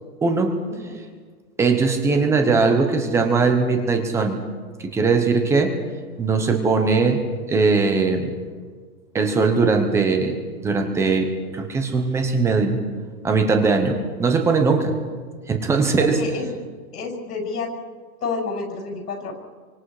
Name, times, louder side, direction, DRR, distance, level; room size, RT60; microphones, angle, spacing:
voice 1, 0.2-0.6 1.6-4.4 4.8-5.7 6.2-7.2 7.5-8.3 9.1-12.8 13.2-15.0 15.5-16.2, right 4 dB, 5° right, 5 dB, 0.9 m, -20 dB
voice 2, 16.0-16.6 16.9-17.7 18.2-19.3, left 4 dB, 90° left, 1 dB, 7.5 m, -29 dB
28.0 x 25.0 x 4.9 m, 1.5 s
hypercardioid pair, 170°, 46 cm